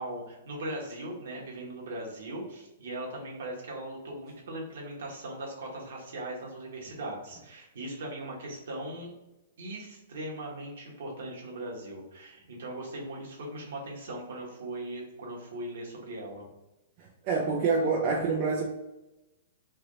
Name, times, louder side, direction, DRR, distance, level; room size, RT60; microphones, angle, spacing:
voice 1, 0.0-9.1 9.6-16.4, right 1 dB, 70° right, -2 dB, 1.3 m, -39 dB
voice 2, 17.0-18.6, right 4 dB, 45° right, -3 dB, 0.6 m, -27 dB
3.3 x 2.8 x 3.8 m, 0.98 s
hypercardioid pair, 130°, 0 cm